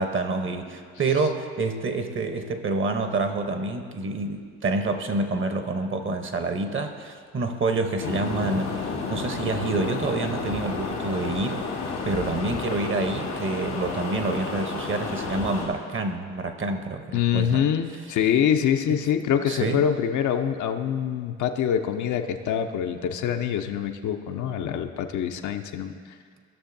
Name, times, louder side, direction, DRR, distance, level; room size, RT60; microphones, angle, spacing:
voice 1, 0.0-11.7 12.0-17.6 18.9-19.0 19.5-19.9, right 3 dB, 40° right, 7 dB, 0.9 m, -28 dB
sound 1, 8.0-15.7, left 4 dB, 90° left, 2.0 m, -31 dB
voice 2, 17.1-25.9, left 9 dB, 65° left, 6 dB, 0.6 m, -25 dB
15.5 x 6.3 x 2.6 m, 2.1 s
supercardioid pair, 65°, 32 cm